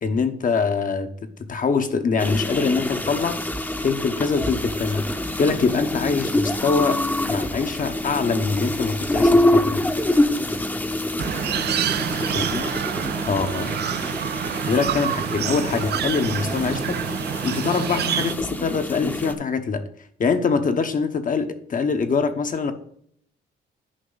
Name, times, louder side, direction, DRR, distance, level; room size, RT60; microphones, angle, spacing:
voice 1, 0.0-3.4 3.8-5.1 5.4-7.0 7.3-9.9 12.3-12.6 13.3-13.8 14.6-17.2 17.4-19.8 20.2-22.7, left 5 dB, 40° left, 8 dB, 0.9 m, -24 dB
sound 1, 2.2-19.3, left 1 dB, 10° left, 0.8 m, -26 dB
sound 2, 11.2-18.3, right 10 dB, 55° right, 0.4 m, -27 dB
9.9 x 5.2 x 3.9 m, 0.66 s
cardioid pair, 90°, 20 cm